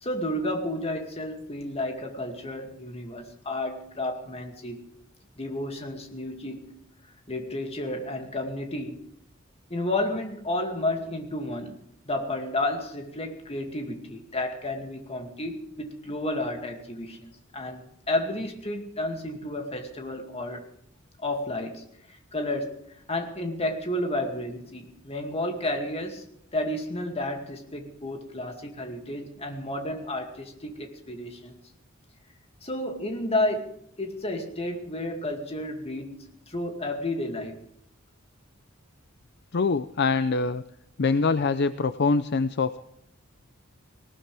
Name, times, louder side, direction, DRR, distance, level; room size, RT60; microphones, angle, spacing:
voice 1, 0.0-4.8 5.4-6.7 7.3-9.0 9.7-11.7 12.1-20.6 21.2-22.8 23.1-26.3 26.5-31.6 32.6-33.7 34.0-37.6, left 1 dB, 30° left, 4 dB, 2.4 m, -31 dB
voice 2, 39.5-40.6 41.0-42.9, left 4 dB, 55° left, 12 dB, 0.6 m, -24 dB
19.5 x 18.5 x 3.5 m, 0.72 s
head